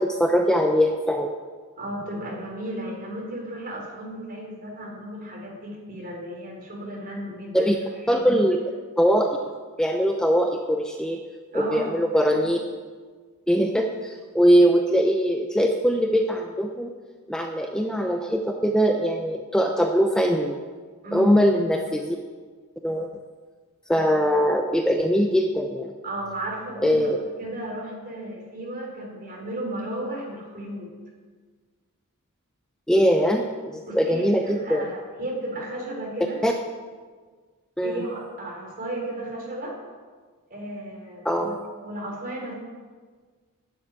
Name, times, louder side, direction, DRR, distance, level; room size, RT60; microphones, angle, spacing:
voice 1, 0.0-1.4 7.5-7.8 8.1-8.6 9.0-9.4 9.8-11.2 11.5-12.6 13.5-16.9 17.3-20.6 21.1-22.2 22.8-23.1 23.9-25.9 26.8-27.2 32.9-33.4 33.7-34.8 36.4-36.5 37.8-38.0 41.2-41.5, equal, 5° left, 3 dB, 0.6 m, -21 dB
voice 2, 1.8-7.8 8.1-8.3 11.5-12.4 21.0-21.3 26.0-27.1 27.4-30.9 33.9-36.4 37.8-39.7 40.5-41.5 41.8-42.5, right 1 dB, 40° right, -2 dB, 3.8 m, -34 dB
10.5 x 7.0 x 8.8 m, 1.5 s
head